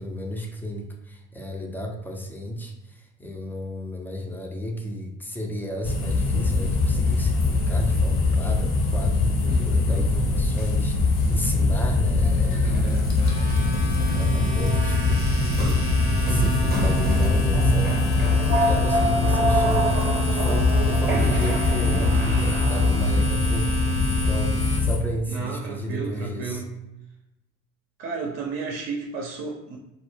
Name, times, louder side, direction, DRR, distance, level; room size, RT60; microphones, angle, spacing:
voice 1, 0.0-9.3 9.6-12.9 13.4-13.8 14.1-15.6 16.1-18.0 18.4-20.0 20.3-23.8 24.3-26.6, equal, 5° left, 1 dB, 0.4 m, -33 dB
sound 1, 5.8-25.0, left 3 dB, 50° left, 0.7 m, -22 dB
voice 2, 9.4-10.0 16.2-16.7 25.3-26.8 28.0-29.8, right 5 dB, 60° right, -1 dB, 0.6 m, -33 dB
sound 2, 12.2-23.5, right 3 dB, 25° right, 0.7 m, -28 dB
Domestic sounds home sounds, 12.9-24.8, left 1 dB, 85° left, 0.6 m, -32 dB
2.1 x 2.0 x 3.2 m, 0.95 s
hypercardioid pair, 60°, 40 cm